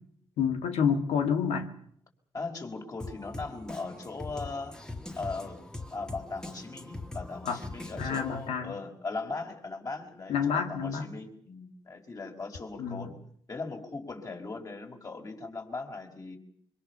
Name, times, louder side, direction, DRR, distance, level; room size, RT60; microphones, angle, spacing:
voice 1, 0.4-1.7 7.5-7.6 8.0-8.7 10.3-11.1 12.8-13.1, left 7 dB, 85° left, 6 dB, 2.3 m, -28 dB
voice 2, 2.3-4.8 5.1-5.6 5.9-13.1 13.5-16.4, left 3 dB, 35° left, 3 dB, 5.2 m, -39 dB
Drum kit, 3.0-8.5, left 2 dB, 5° left, 1.9 m, -42 dB
25.5 x 24.0 x 6.9 m, 0.65 s
cardioid pair, 85°, 11 cm